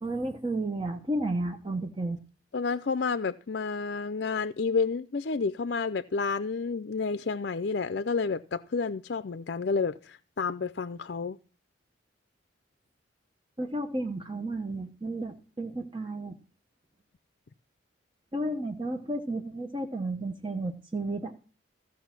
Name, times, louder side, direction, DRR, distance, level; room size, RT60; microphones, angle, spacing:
voice 1, 0.0-2.2 13.6-16.4 18.3-21.3, right 2 dB, 25° right, 0.9 m, -32 dB
voice 2, 2.5-11.4, left 4 dB, 55° left, 0.5 m, -30 dB
15.5 x 6.2 x 5.9 m
head